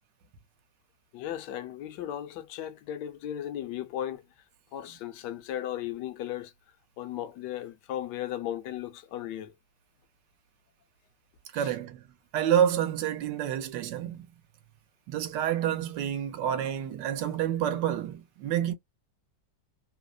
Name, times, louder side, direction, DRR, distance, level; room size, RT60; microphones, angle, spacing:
voice 1, 1.1-4.2 4.7-6.5 7.0-9.5 11.5-11.7, left 11 dB, 75° left, 1.1 m, -36 dB
voice 2, 11.5-12.0 12.3-14.3 15.1-18.7, right 10 dB, 75° right, 1.2 m, -28 dB
3.2 x 2.0 x 2.3 m
omnidirectional pair, 2.0 m